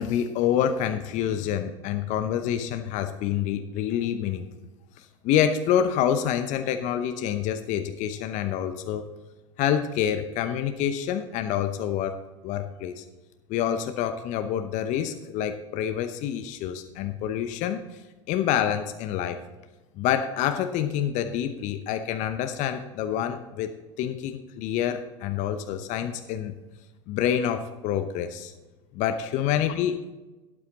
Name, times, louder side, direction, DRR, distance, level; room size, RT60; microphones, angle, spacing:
voice 1, 0.0-4.5 5.0-9.0 9.6-12.2 12.4-13.0 13.5-18.0 18.3-19.4 20.0-26.5 27.1-28.5 28.9-30.1, left 9 dB, 50° left, 8 dB, 0.8 m, -27 dB
12.5 x 8.7 x 3.9 m, 1.1 s
hypercardioid pair, 85°, 16 cm